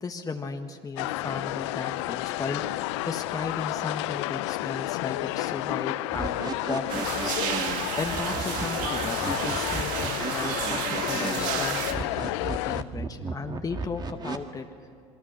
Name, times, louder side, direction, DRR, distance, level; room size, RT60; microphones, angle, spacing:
voice 1, 0.0-2.6 3.0-6.4 6.7-7.4 8.0-14.7, left 4 dB, 25° left, 4 dB, 1.6 m, -35 dB
sound 1, 1.0-12.8, left 18 dB, 80° left, 0.5 m, -31 dB
sound 2, 6.1-14.4, right 4 dB, 30° right, 1.8 m, -35 dB
sound 3, 6.9-11.9, right 8 dB, 65° right, 1.8 m, -32 dB
28.0 x 20.5 x 6.5 m, 2.3 s
hypercardioid pair, 85°, 15 cm